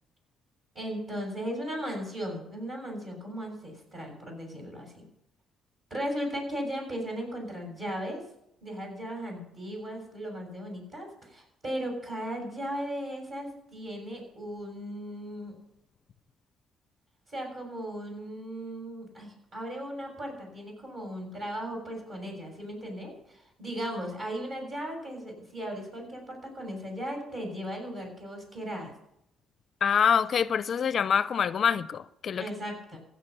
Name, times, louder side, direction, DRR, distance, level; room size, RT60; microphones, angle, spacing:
voice 1, 0.8-5.0 5.9-8.2 8.6-15.5 17.3-28.9 32.4-33.0, equal, 40° right, 6.9 m, -37 dB
voice 2, 29.8-32.5, left 7 dB, 50° left, 0.5 m, -25 dB
16.0 x 7.2 x 6.9 m
cardioid pair, 95°, 0 cm